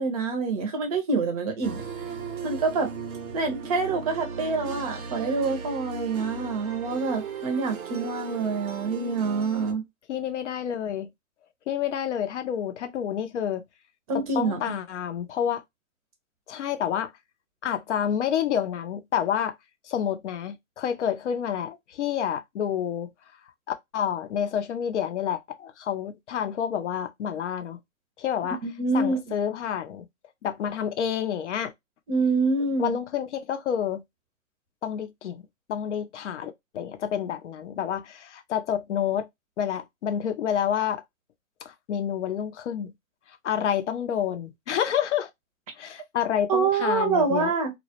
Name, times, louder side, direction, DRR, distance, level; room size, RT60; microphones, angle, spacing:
voice 1, 0.0-1.8 2.4-2.9 3.3-9.8 14.1-14.6 28.6-29.2 32.1-32.9 46.5-47.7, right 4 dB, 25° right, 0.6 m, -26 dB
sound 1, 1.6-9.7, right 5 dB, 85° right, 0.7 m, -37 dB
voice 2, 10.1-11.1 11.7-13.6 14.1-15.6 16.5-17.1 17.6-19.5 19.8-23.1 23.9-27.8 28.2-28.6 28.9-30.1 30.4-31.7 32.8-34.0 34.8-35.4 35.7-39.3 39.6-41.0 41.6-42.9 43.4-45.3 45.8-47.5, left 9 dB, 55° left, 0.5 m, -29 dB
2.2 x 2.0 x 2.7 m
hypercardioid pair, 135°, 42 cm